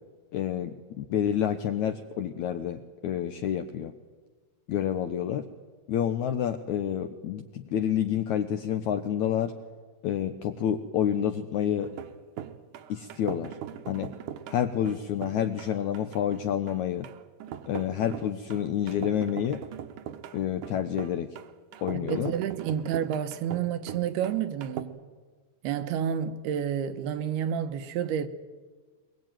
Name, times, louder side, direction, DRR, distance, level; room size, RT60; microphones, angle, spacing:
voice 1, 0.3-3.9 4.7-5.5 5.9-9.5 10.0-11.9 12.9-13.6 13.9-14.1 14.5-17.1 17.7-19.6 20.3-21.3 21.8-22.3, left 9 dB, 75° left, 1.7 m, -28 dB
sound 1, 11.8-24.8, right 10 dB, 65° right, 2.2 m, -41 dB
voice 2, 21.9-25.0 25.6-28.3, right 9 dB, 85° right, 3.1 m, -30 dB
23.0 x 22.0 x 9.0 m
omnidirectional pair, 4.5 m